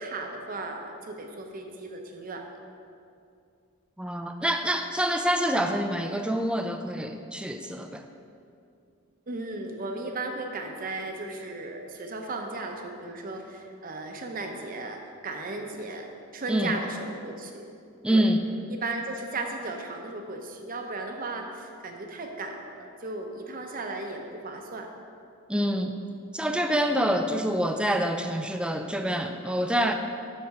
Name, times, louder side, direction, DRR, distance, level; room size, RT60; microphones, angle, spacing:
voice 1, 0.0-2.5 9.3-17.7 18.1-18.3 18.7-24.9 26.9-27.1, right 2 dB, 40° right, 3 dB, 0.8 m, -36 dB
voice 2, 4.0-8.0 16.5-16.7 18.0-18.4 25.5-25.9 26.3-29.9, equal, 5° right, 6 dB, 0.3 m, -26 dB
12.0 x 4.3 x 4.8 m, 2.4 s
head